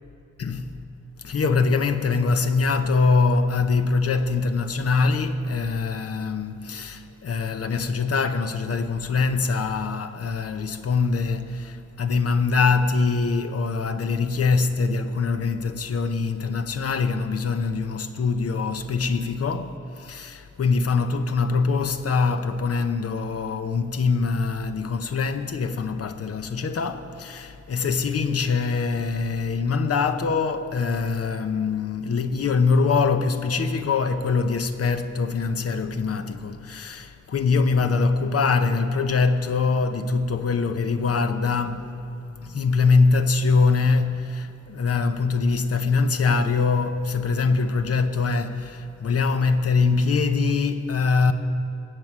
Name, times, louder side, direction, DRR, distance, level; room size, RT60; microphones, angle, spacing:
voice 1, 0.4-0.8 1.2-51.3, left 4 dB, 55° left, 0.9 m, -23 dB
19.5 x 8.2 x 7.5 m
wide cardioid pair, 125°, 29 cm